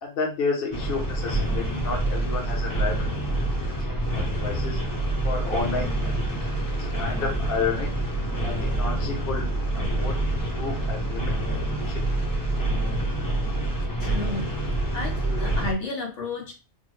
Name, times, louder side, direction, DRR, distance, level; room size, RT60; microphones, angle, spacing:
voice 1, 0.0-3.1 3.9-4.8 5.2-6.1 7.0-7.9 8.4-9.5 9.7-12.0, left 4 dB, 60° left, 0 dB, 1.0 m, -31 dB
sound 1, 0.7-15.7, right 1 dB, 25° left, 0.5 m, -27 dB
voice 2, 14.0-14.5 14.9-16.6, left 2 dB, 85° left, -1 dB, 1.5 m, -32 dB
4.2 x 2.1 x 3.0 m, 0.30 s
omnidirectional pair, 1.2 m